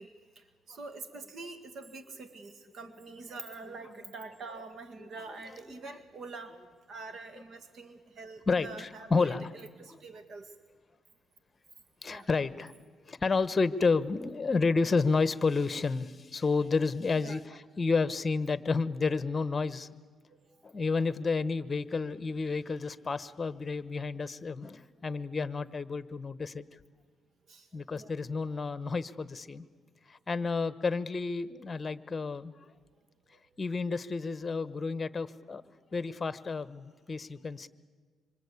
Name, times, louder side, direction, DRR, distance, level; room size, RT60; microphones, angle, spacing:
voice 1, 0.0-6.6 6.9-10.5 12.1-12.3 13.1-13.2 17.2-17.6 20.3-20.5 27.5-28.1 33.3-33.4, right 3 dB, 60° right, 8 dB, 1.9 m, -46 dB
voice 2, 8.5-9.5 9.9-10.0 12.0-12.7 13.0-19.9 20.6-26.6 27.7-29.7 30.1-32.5 33.6-35.6 35.9-37.7, left 4 dB, 30° left, 14 dB, 1.2 m, -30 dB
26.0 x 25.5 x 8.5 m, 1.5 s
cardioid pair, 90°, 0 cm